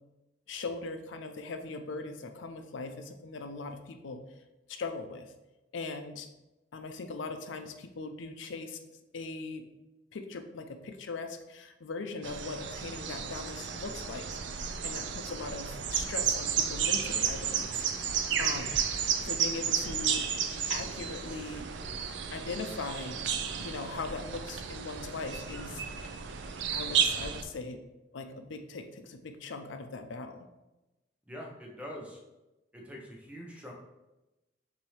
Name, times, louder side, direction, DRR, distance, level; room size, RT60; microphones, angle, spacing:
voice 1, 0.5-4.2 4.7-5.3 5.7-6.3 6.7-8.8 9.1-9.7 10.1-14.3 14.5-18.8 19.2-20.2 20.7-21.7 22.3-23.2 23.6-26.1 26.7-27.8 28.1-30.5, left 3 dB, 90° left, 7 dB, 0.5 m, -40 dB
sound 1, 12.2-27.4, right 7 dB, 70° right, 0.4 m, -32 dB
voice 2, 31.3-32.2 32.7-33.7, equal, 5° right, -1 dB, 0.8 m, -44 dB
5.9 x 2.7 x 3.2 m, 1.0 s
head